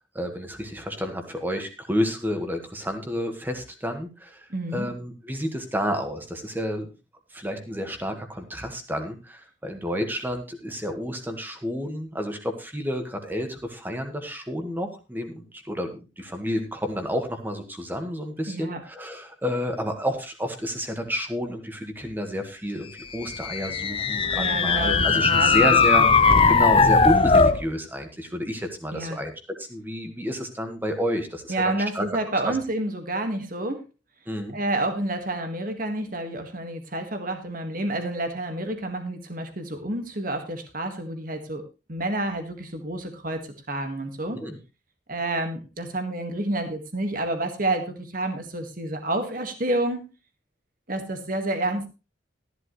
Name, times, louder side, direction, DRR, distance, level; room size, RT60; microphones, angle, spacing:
voice 1, 0.2-6.9 7.3-29.3 29.6-32.1 32.5-32.6 34.3-34.6 44.3-44.6, equal, 10° right, 5 dB, 1.6 m, -30 dB
voice 2, 4.5-4.9 18.5-18.8 24.3-26.1 26.3-26.6 28.9-29.2 31.5-33.8 34.5-41.6 41.9-44.4 45.1-50.0 50.9-51.9, right 2 dB, 45° right, 6 dB, 1.8 m, -29 dB
sound 1, 23.2-27.6, left 4 dB, 30° left, 0.6 m, -19 dB
14.0 x 11.0 x 3.2 m, 0.29 s
head